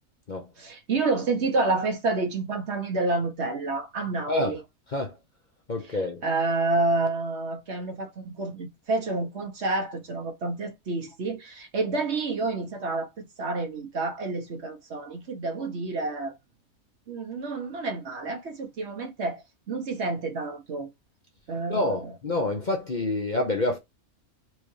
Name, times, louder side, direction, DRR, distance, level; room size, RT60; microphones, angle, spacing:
voice 1, 0.6-4.6 6.2-16.3 17.1-20.9 21.5-22.1, right 3 dB, 55° right, 1.2 m, -29 dB
voice 2, 5.7-6.2 21.7-23.8, left 2 dB, 40° left, 0.9 m, -27 dB
4.6 x 3.4 x 3.2 m
omnidirectional pair, 1.5 m